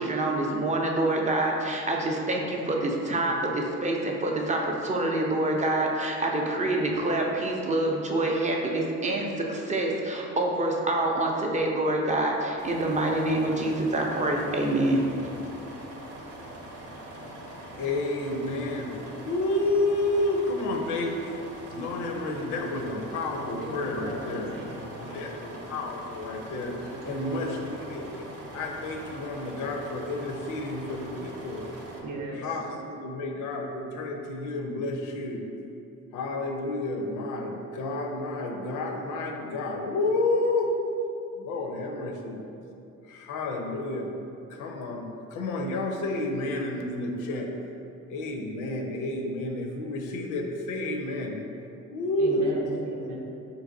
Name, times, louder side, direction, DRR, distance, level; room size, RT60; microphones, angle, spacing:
voice 1, 0.0-15.0, right 1 dB, 25° right, 0 dB, 0.4 m, -26 dB
sound 1, 12.6-32.0, right 1 dB, 55° right, 0.7 m, -43 dB
voice 2, 17.8-18.9 19.3-21.3 21.7-24.5 25.0-26.8 27.1-28.3 28.5-31.7 32.4-35.4 36.1-40.8 41.4-42.4 43.1-44.1 44.6-47.5 48.1-51.4 51.9-52.5, left 2 dB, 90° left, 2 dB, 0.5 m, -30 dB
voice 3, 23.6-25.3 26.8-27.6 32.0-32.6 52.2-53.2, right 1 dB, 85° right, -3 dB, 0.7 m, -37 dB
3.9 x 2.8 x 2.6 m, 2.7 s
cardioid pair, 90°, 30 cm